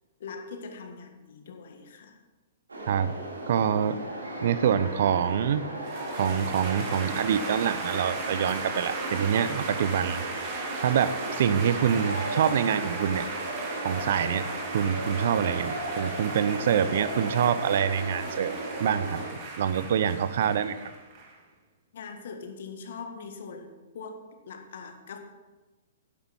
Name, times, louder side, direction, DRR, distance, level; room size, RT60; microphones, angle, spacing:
voice 1, 0.2-2.2 21.9-25.2, left 5 dB, 60° left, 5 dB, 1.8 m, -42 dB
sound 1, 2.7-19.3, right 1 dB, 85° right, 2.9 m, -36 dB
voice 2, 3.5-4.0 4.4-5.6 6.2-10.2 10.8-13.3 13.8-18.5 18.8-19.2 19.6-20.9, right 8 dB, 60° right, 14 dB, 0.6 m, -26 dB
sound 2, 5.8-21.3, right 3 dB, 40° right, 2.8 m, -37 dB
12.0 x 9.9 x 4.4 m, 1.2 s
figure-of-eight pair, 115°, 0 cm